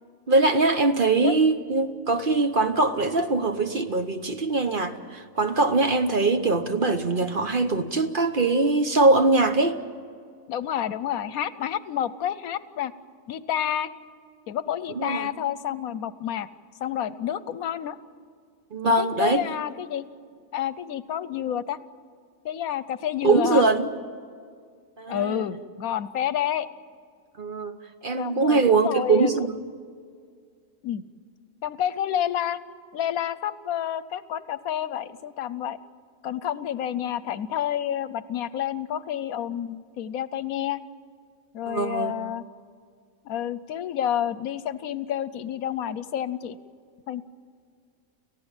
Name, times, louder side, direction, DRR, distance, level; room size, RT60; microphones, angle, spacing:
voice 1, 0.3-9.8 14.9-15.3 18.7-19.4 23.2-23.9 25.0-25.4 27.4-27.8 28.0-29.6 41.7-42.2, right 3 dB, 40° right, 8 dB, 1.0 m, -22 dB
voice 2, 10.5-12.9 13.3-13.9 14.5-16.5 16.8-18.0 18.8-20.0 20.5-21.8 22.4-23.6 25.1-26.7 28.2-29.5 30.8-31.0 31.6-32.6 32.9-35.8 36.2-40.8 41.5-42.4 43.2-46.6 47.1-47.2, left 10 dB, 80° left, 16 dB, 1.2 m, -29 dB
29.5 x 15.0 x 9.0 m, 2.2 s
omnidirectional pair, 1.5 m